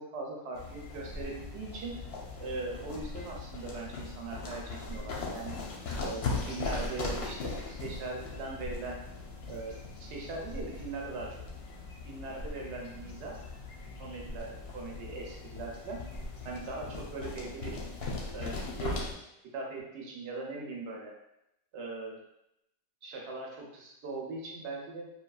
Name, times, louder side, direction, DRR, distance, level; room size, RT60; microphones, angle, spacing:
voice 1, 0.0-2.0 2.4-5.5 6.0-9.0 9.5-11.4 12.0-13.4 14.0-16.0 16.4-17.8 18.3-19.1 19.5-21.1 21.7-22.2 23.0-25.1, right 3 dB, 70° right, -1 dB, 0.9 m, -40 dB
sound 1, 0.5-19.1, left 3 dB, 65° left, 0.7 m, -39 dB
3.0 x 2.3 x 2.3 m, 0.83 s
omnidirectional pair, 1.3 m